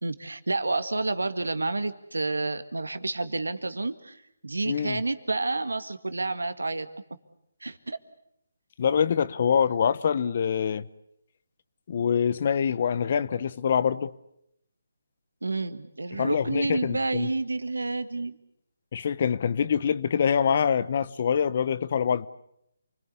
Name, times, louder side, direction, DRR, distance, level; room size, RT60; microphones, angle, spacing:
voice 1, 0.0-6.9 7.6-8.0 15.4-18.4, right 2 dB, 85° right, 2.0 m, -29 dB
voice 2, 4.7-5.0 8.8-10.8 11.9-14.1 16.1-17.3 18.9-22.3, left 7 dB, 45° left, 1.0 m, -25 dB
28.5 x 21.0 x 8.3 m
figure-of-eight pair, 155°, 0 cm